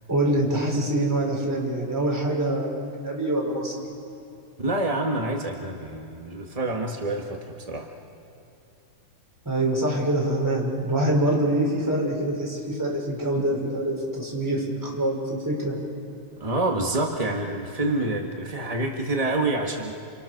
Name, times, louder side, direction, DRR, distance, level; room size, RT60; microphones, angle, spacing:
voice 1, 0.1-3.9 9.5-15.8, right 1 dB, 5° right, -2 dB, 5.2 m, -25 dB
voice 2, 4.6-7.9 16.4-19.9, right 2 dB, 30° right, 1 dB, 0.6 m, -27 dB
30.0 x 29.5 x 6.5 m, 2.7 s
omnidirectional pair, 3.5 m